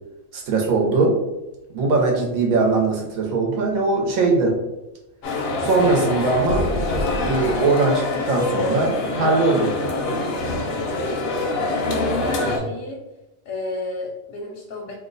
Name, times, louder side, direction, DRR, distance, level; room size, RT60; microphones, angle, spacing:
voice 1, 0.3-1.1 1.7-4.6 5.6-6.7 7.2-9.7, right 3 dB, 90° right, -1 dB, 1.2 m, -20 dB
sound 1, 5.2-12.6, left 2 dB, 60° left, 0.7 m, -24 dB
voice 2, 11.9-13.0 13.5-15.0, left 2 dB, 80° left, -1 dB, 1.0 m, -31 dB
2.9 x 2.1 x 3.8 m, 1.0 s
omnidirectional pair, 1.4 m